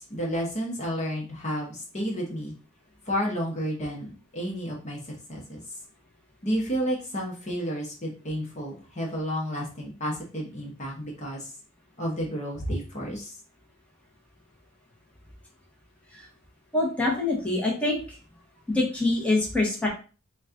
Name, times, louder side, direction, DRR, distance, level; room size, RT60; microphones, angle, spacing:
voice 1, 0.0-2.5 3.0-5.6 6.4-11.5 12.0-13.4, equal, 35° left, -2 dB, 0.9 m, -31 dB
voice 2, 16.7-18.2 18.7-19.9, left 2 dB, 5° left, -3 dB, 1.0 m, -25 dB
4.1 x 2.3 x 3.6 m, 0.35 s
head